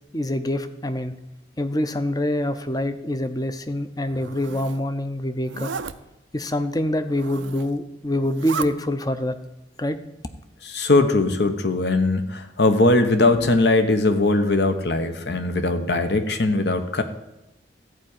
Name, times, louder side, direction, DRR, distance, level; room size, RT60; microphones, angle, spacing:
voice 1, 0.1-1.2 1.6-5.7 6.3-9.4 9.8-10.0, left 1 dB, 20° left, 10 dB, 0.6 m, -25 dB
Zipper (clothing), 4.0-4.8 5.4-5.9 7.0-7.8 8.2-8.7, right 6 dB, 90° right, 0.6 m, -34 dB
voice 2, 10.6-17.0, left 2 dB, 65° left, 8 dB, 1.1 m, -20 dB
14.0 x 4.8 x 8.9 m, 0.94 s
head